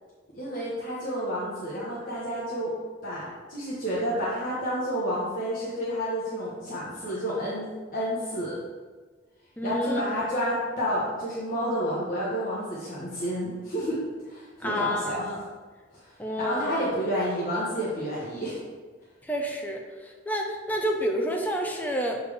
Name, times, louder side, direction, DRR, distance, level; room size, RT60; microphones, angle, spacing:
voice 1, 0.3-2.7 3.0-7.6 7.9-8.6 9.6-14.0 14.3-15.4 16.0-16.1 16.4-18.6, equal, 45° left, -8 dB, 1.4 m, -30 dB
voice 2, 9.6-10.0 14.6-15.4 16.2-16.7 19.3-19.8 20.3-22.2, equal, 10° left, 1 dB, 0.7 m, -29 dB
6.9 x 4.4 x 3.5 m, 1.4 s
head